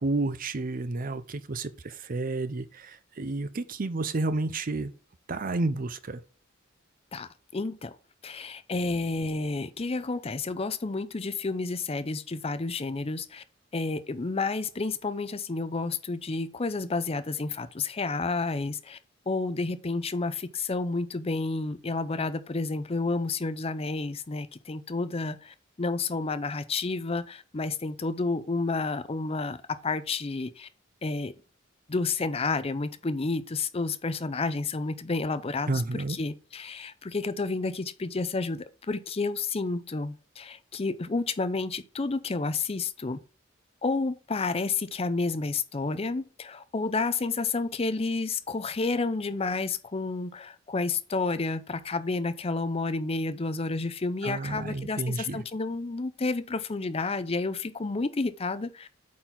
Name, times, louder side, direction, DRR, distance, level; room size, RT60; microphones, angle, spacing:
voice 1, 0.0-4.9 5.3-6.2 35.7-36.2 54.2-55.4, right 2 dB, 45° right, 0.6 m, -31 dB
voice 2, 7.1-8.0 8.2-13.4 13.7-19.0 19.3-29.6 29.8-30.7 31.0-31.3 31.9-43.2 43.8-58.9, left 3 dB, 30° left, 0.5 m, -30 dB
8.5 x 4.4 x 3.9 m
head